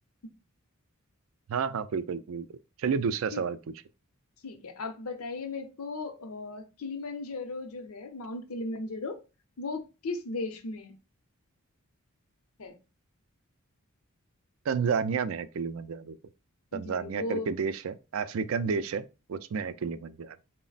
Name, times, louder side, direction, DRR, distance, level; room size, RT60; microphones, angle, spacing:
voice 1, 1.5-2.5 2.8-3.6 14.7-16.2 16.7-20.4, right 6 dB, 65° right, 0.3 m, -31 dB
voice 2, 4.4-9.2 9.6-10.9 12.6-12.7 16.7-17.5, left 3 dB, 75° left, 0.6 m, -36 dB
4.0 x 2.1 x 3.9 m
head